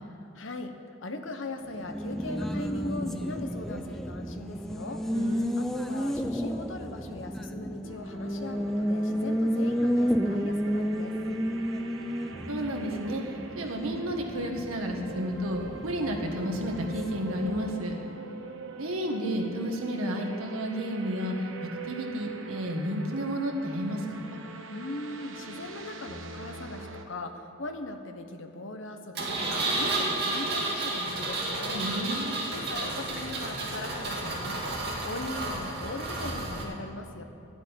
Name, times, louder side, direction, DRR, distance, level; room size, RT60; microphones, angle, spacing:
voice 1, 0.3-5.0 5.6-11.2 24.7-31.9 32.5-34.8 35.0-37.2, left 2 dB, 65° left, 6 dB, 1.1 m, -39 dB
Race car auto racing, 1.6-17.9, equal, ahead, 0.5 m, -32 dB
voice 2, 5.1-5.6 12.3-13.2 13.6-17.9 18.8-21.3 21.6-24.4 31.7-32.4, equal, 90° right, 2 dB, 1.7 m, -32 dB
sound 1, 7.8-27.1, right 3 dB, 70° right, 1.1 m, -43 dB
Engine, 29.2-36.6, right 2 dB, 50° right, 2.4 m, -31 dB
12.5 x 8.2 x 10.0 m, 2.7 s
head